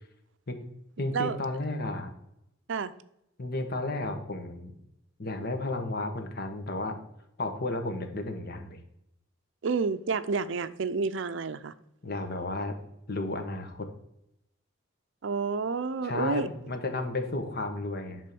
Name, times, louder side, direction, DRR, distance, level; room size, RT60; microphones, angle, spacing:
voice 1, 1.0-2.1 3.4-4.7 5.2-7.0 7.4-8.8 12.0-12.7 13.1-13.9 16.0-18.3, left 2 dB, 50° left, 1.3 m, -33 dB
voice 2, 9.6-11.7 15.2-16.5, right 4 dB, 65° right, 0.5 m, -29 dB
11.0 x 3.7 x 6.9 m
head